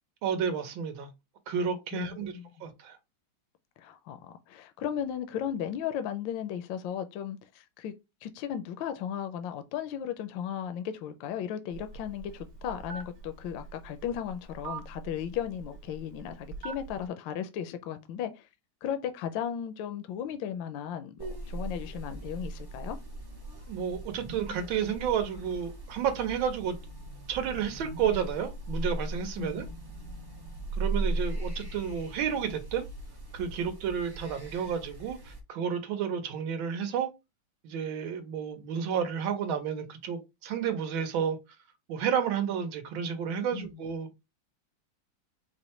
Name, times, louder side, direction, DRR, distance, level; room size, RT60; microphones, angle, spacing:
voice 1, 0.2-1.1 1.5-3.0 23.7-26.8 27.3-29.7 30.8-32.9 33.3-37.1 37.6-41.4 41.9-44.1, right 7 dB, 80° right, 1.6 m, -31 dB
voice 2, 1.9-2.7 3.8-7.9 8.2-18.5 18.8-23.0 29.4-29.8 43.5-43.7, left 9 dB, 75° left, 1.3 m, -36 dB
Telephone, 11.7-17.0, right 5 dB, 55° right, 1.2 m, -44 dB
sound 1, 21.2-35.4, right 2 dB, 30° right, 0.4 m, -38 dB
5.0 x 2.2 x 4.3 m
omnidirectional pair, 2.2 m